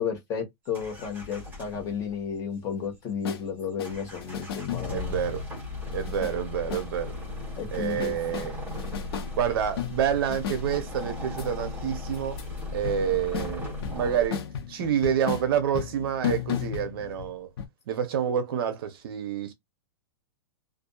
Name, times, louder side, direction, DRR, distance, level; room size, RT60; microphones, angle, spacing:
voice 1, 0.0-5.1 7.6-8.5, left 7 dB, 25° left, 1.1 m, -33 dB
sound 1, 0.7-2.2 2.4-2.6 2.8-3.4 3.8-14.3, left 2 dB, 10° right, 1.2 m, -37 dB
sound 2, 3.2-3.4 3.8-5.1 5.9-6.3 6.7-6.9 7.7-9.3 9.8-10.6 11.4-11.5 12.1-12.6 12.8-17.3 17.6-17.7, left 8 dB, 55° left, 0.8 m, -34 dB
voice 2, 4.9-5.4 5.9-7.1 7.7-8.6 9.4-12.4 12.7-14.4 14.7-17.5 17.9-19.5, right 8 dB, 55° right, 0.6 m, -28 dB
2.6 x 2.4 x 2.2 m
supercardioid pair, 160°, 15 cm